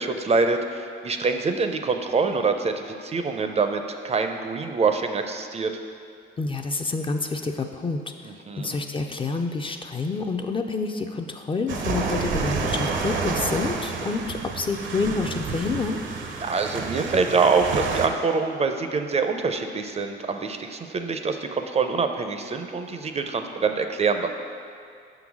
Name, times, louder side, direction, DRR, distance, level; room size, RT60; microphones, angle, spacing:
voice 1, 0.0-5.7 8.2-8.8 16.4-24.3, right 4 dB, 35° right, 6 dB, 0.4 m, -25 dB
voice 2, 6.4-16.0, left 3 dB, 25° left, 5 dB, 0.4 m, -28 dB
sound 1, 11.7-18.1, right 4 dB, 70° right, 0.7 m, -29 dB
5.7 x 3.9 x 6.0 m, 2.3 s
cardioid pair, 90°, 20 cm